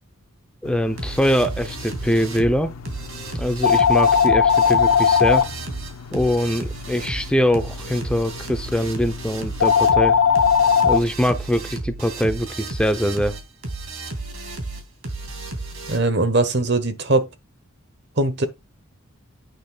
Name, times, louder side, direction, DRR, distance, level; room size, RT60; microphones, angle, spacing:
voice 1, 0.6-2.7 3.3-5.5 6.1-10.2 10.8-13.4, equal, 5° left, 0.7 m, -22 dB
sound 1, 0.7-11.0, left 7 dB, 75° left, 1.1 m, -21 dB
sound 2, 1.0-16.0, right 2 dB, 65° right, 3.0 m, -33 dB
voice 2, 15.9-17.3 18.2-18.5, right 2 dB, 50° right, 1.3 m, -20 dB
8.8 x 6.3 x 4.0 m
head